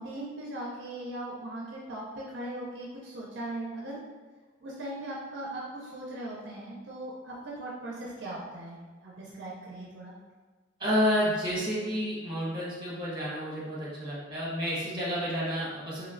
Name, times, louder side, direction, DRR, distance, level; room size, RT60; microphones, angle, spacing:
voice 1, 0.0-4.0 4.6-10.1, right 1 dB, 60° right, -4 dB, 0.5 m, -39 dB
voice 2, 10.8-16.1, equal, 25° right, -6 dB, 1.1 m, -30 dB
3.0 x 3.0 x 2.5 m, 1.3 s
head